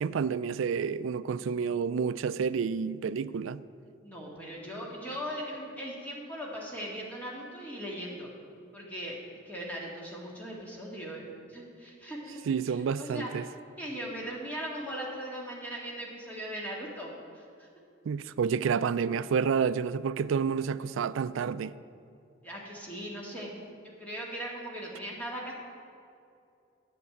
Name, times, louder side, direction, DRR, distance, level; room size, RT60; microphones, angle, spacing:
voice 1, 0.0-3.6 12.5-13.5 18.1-21.7, right 6 dB, 80° right, 0.3 m, -29 dB
voice 2, 4.0-8.3 8.7-9.2 9.5-12.4 12.7-13.5 13.8-17.7 22.4-23.5 23.8-25.5, equal, 10° left, 1.9 m, -39 dB
8.2 x 7.4 x 8.5 m
head